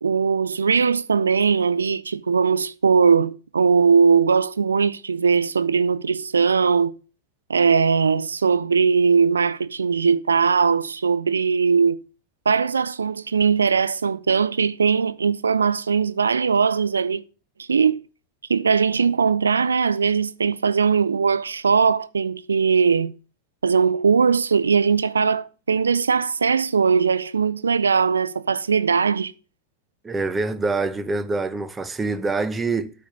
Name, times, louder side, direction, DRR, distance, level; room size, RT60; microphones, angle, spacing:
voice 1, 0.0-6.9 7.5-12.0 12.5-17.2 17.6-18.0 18.5-23.1 23.6-29.3, right 5 dB, 75° right, 0.4 m, -20 dB
voice 2, 30.0-32.9, right 3 dB, 15° right, 0.7 m, -25 dB
8.8 x 4.3 x 6.7 m
figure-of-eight pair, 90°, 0 cm